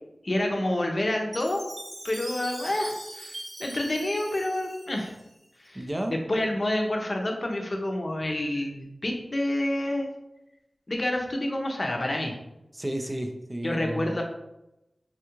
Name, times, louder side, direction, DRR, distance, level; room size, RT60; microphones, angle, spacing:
voice 1, 0.2-1.7 2.0-5.1 5.6-5.8 6.3-10.1 10.9-12.4 13.6-14.2, left 1 dB, 45° left, 2 dB, 0.6 m, -28 dB
Chime, 1.3-5.7, right 1 dB, 55° right, 0.9 m, -41 dB
voice 2, 5.7-6.2 12.7-14.2, right 1 dB, 25° right, 4 dB, 0.4 m, -32 dB
3.5 x 2.3 x 2.9 m, 0.90 s
wide cardioid pair, 50°, 0 cm